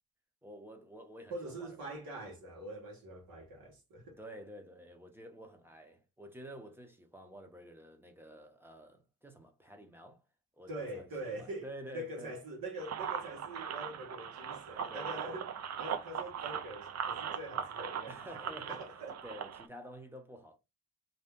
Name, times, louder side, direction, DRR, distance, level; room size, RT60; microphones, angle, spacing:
voice 1, 0.4-2.0 4.2-10.2 10.5-12.3 14.9-15.4 18.1-18.9 19.2-20.6, equal, 5° right, 0.6 m, -50 dB
voice 2, 1.3-4.2 10.7-15.5 15.8-19.2, right 1 dB, 85° right, 1.2 m, -44 dB
sound 1, 12.8-19.7, right 7 dB, 50° right, 0.4 m, -40 dB
2.7 x 2.2 x 3.4 m
wide cardioid pair, 125°, 34 cm